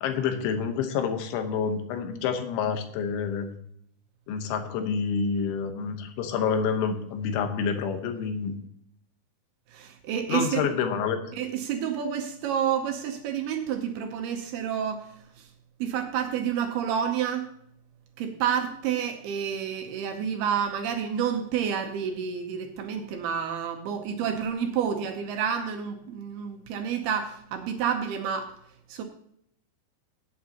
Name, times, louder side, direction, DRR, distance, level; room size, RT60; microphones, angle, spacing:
voice 1, 0.0-3.5 4.3-8.6 10.3-11.2, left 6 dB, 85° left, 6 dB, 3.6 m, -28 dB
voice 2, 9.7-10.6 11.4-15.1 15.8-17.5 18.2-28.5 28.9-29.0, right 8 dB, 75° right, 4 dB, 2.5 m, -29 dB
17.5 x 8.6 x 2.9 m, 0.70 s
omnidirectional pair, 5.3 m